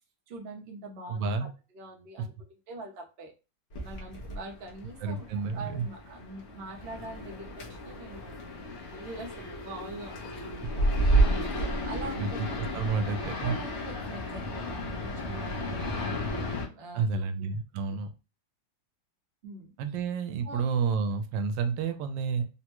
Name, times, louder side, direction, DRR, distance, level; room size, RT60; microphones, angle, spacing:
voice 1, 0.3-3.3 3.8-8.5 8.9-10.9 11.6-12.4 13.3-17.5 17.9-18.0 19.4-19.7 20.4-20.6 22.4-22.5, right 2 dB, 55° right, 1 dB, 0.7 m, -44 dB
voice 2, 1.1-1.5 5.0-5.9 12.2-12.3 12.6-13.5 16.9-18.1 19.8-22.4, right 5 dB, 90° right, 8 dB, 1.3 m, -30 dB
sound 1, 3.7-16.7, right 1 dB, 50° left, 0.9 m, -32 dB
3.6 x 2.1 x 2.9 m, 0.30 s
omnidirectional pair, 2.0 m